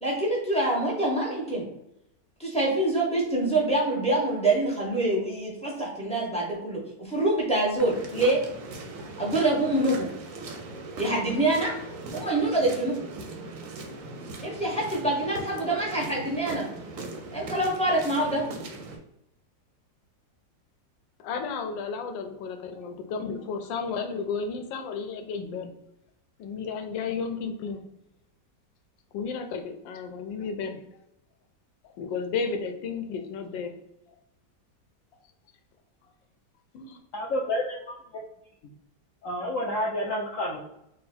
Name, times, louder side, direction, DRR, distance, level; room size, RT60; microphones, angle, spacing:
voice 1, 0.0-1.7 2.4-8.4 9.2-10.1 11.0-11.8 12.1-13.0 14.4-16.7 17.3-18.5, right 2 dB, 10° left, -4 dB, 0.4 m, -25 dB
sound 1, 7.8-19.0, right 2 dB, 65° right, 0.8 m, -39 dB
voice 2, 21.2-25.7 26.4-27.8 29.1-30.8 31.8-33.8 34.1-34.2 36.7-37.0, left 5 dB, 90° left, 6 dB, 1.3 m, -33 dB
voice 3, 37.1-37.6 39.2-40.6, left 1 dB, 75° left, -1 dB, 0.7 m, -28 dB
3.8 x 2.3 x 4.1 m, 0.83 s
omnidirectional pair, 2.0 m